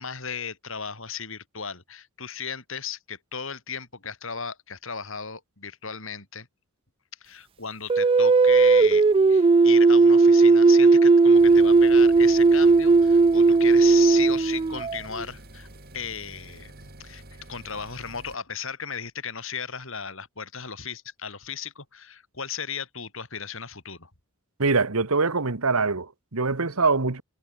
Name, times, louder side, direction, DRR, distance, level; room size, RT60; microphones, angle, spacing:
voice 1, 0.0-6.5 7.2-15.7 15.9-17.2 17.5-24.1, left 6 dB, 65° left, 5.3 m, -36 dB
sound 1, 7.9-15.2, right 3 dB, 25° right, 0.3 m, -17 dB
sound 2, 11.4-18.4, right 1 dB, 45° right, 6.5 m, -47 dB
voice 2, 24.6-27.2, right 4 dB, 85° right, 1.5 m, -23 dB
head